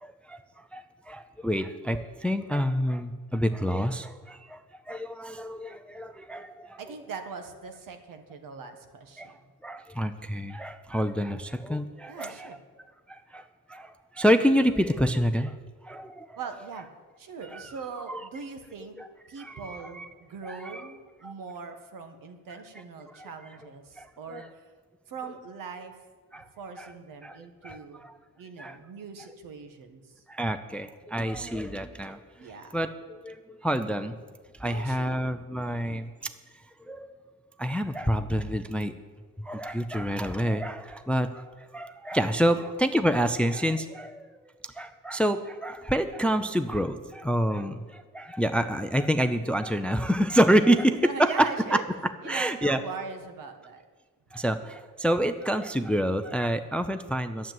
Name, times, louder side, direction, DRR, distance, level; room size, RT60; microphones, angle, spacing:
voice 1, 0.0-4.6 4.9-6.8 9.2-9.3 9.6-12.5 13.1-15.5 15.8-16.4 17.5-17.6 18.1-18.2 19.0-19.1 19.4-20.1 20.4-20.8 21.2-21.3 23.2-23.3 24.0-24.5 26.3-26.5 26.8-26.9 27.2-27.4 27.6-28.1 28.6-28.8 30.3-32.2 32.7-34.2 34.6-36.1 36.9-37.1 37.6-38.9 39.4-44.3 44.8-51.3 52.3-52.8 54.3-57.5, equal, 5° left, 10 dB, 0.4 m, -28 dB
voice 2, 6.8-9.4 12.1-12.6 16.4-16.9 17.2-19.0 19.3-24.7 25.1-26.0 26.4-28.0 28.4-30.2 32.4-32.7 34.6-35.2 42.5-42.6 50.9-51.8 52.2-53.8, right 5 dB, 75° right, 6 dB, 1.6 m, -41 dB
12.0 x 7.5 x 9.3 m, 1.4 s
wide cardioid pair, 170°, 33 cm